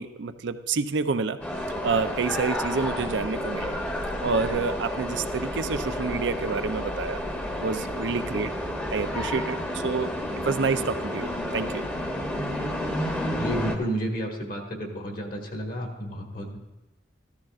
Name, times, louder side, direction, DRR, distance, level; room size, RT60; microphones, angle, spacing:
voice 1, 0.0-1.4 1.8-3.7 4.2-7.2 7.6-8.5 8.9-10.2 10.5-11.9, right 4 dB, 75° right, 10 dB, 0.5 m, -28 dB
sound 1, 1.4-13.8, left 1 dB, 10° left, 1.0 m, -31 dB
voice 2, 13.4-16.6, equal, 50° left, 1 dB, 1.7 m, -31 dB
14.0 x 13.0 x 2.4 m, 1.0 s
head